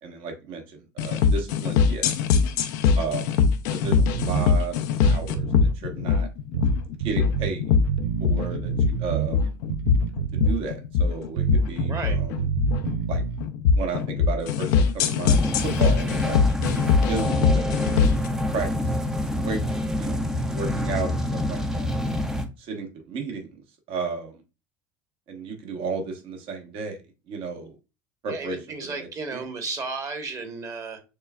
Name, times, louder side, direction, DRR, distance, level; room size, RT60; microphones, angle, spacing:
voice 1, 0.0-2.2 3.0-3.3 3.7-5.5 5.7-6.3 7.0-7.8 8.2-9.5 10.3-12.4 13.1-13.2 13.7-16.4 17.1-17.8 18.5-19.0 19.4-19.6 19.9-22.0 22.6-23.5 23.9-24.3 25.3-27.7 28.2-29.4, right 4 dB, 60° right, 4 dB, 1.3 m, -33 dB
sound 1, 1.0-18.3, left 6 dB, 75° left, 0.5 m, -22 dB
sound 2, 3.8-4.5 5.0-5.8 6.5-7.5 7.9-9.3 9.7-10.7 11.4-13.4, right 10 dB, 80° right, 0.4 m, -28 dB
sound 3, 15.2-22.5, left 1 dB, 5° right, 0.6 m, -27 dB
voice 2, 28.3-31.0, right 4 dB, 35° right, 6 dB, 1.3 m, -33 dB
6.5 x 2.3 x 2.3 m, 0.29 s
supercardioid pair, 90°, 10 cm